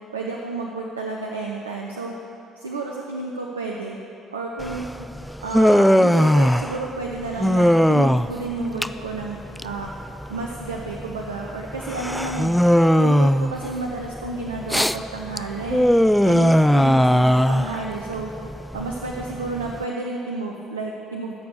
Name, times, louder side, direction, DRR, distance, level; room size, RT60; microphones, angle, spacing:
voice 1, 0.1-2.1 2.6-4.0 4.3-5.1 5.4-9.9 10.3-12.5 12.9-15.9 16.2-18.3 18.7-21.5, right 3 dB, 85° right, 0 dB, 0.7 m, -31 dB
Human voice, 4.6-19.8, equal, ahead, 0.4 m, -20 dB
15.0 x 7.1 x 6.4 m, 2.8 s
figure-of-eight pair, 50°, 0 cm